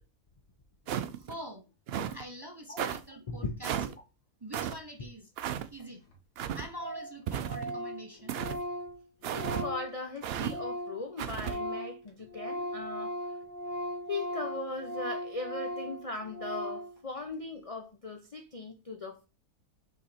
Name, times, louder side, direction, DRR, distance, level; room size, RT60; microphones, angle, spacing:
sound 1, 0.9-1.4 1.9-2.2 2.8-3.0 3.6-3.9 4.5-4.8 5.4-5.7 6.4-6.7 7.3-7.8 8.3-8.6 9.2-9.7 10.2-10.5 11.2-11.6, right 9 dB, 90° right, 0.5 m, -34 dB
voice 1, 1.1-1.7 2.1-3.9 4.4-5.3 5.7-6.0 6.5-8.5, equal, 25° right, 0.5 m, -45 dB
Organ, 5.8-5.9 6.1-6.2 6.4-6.5 6.8-7.1 7.4-11.0 11.3-16.9, equal, 85° left, 1.8 m, -38 dB
voice 2, 9.3-13.1 14.1-19.3, left 3 dB, 65° left, 0.3 m, -39 dB
5.7 x 4.0 x 4.1 m
omnidirectional pair, 1.6 m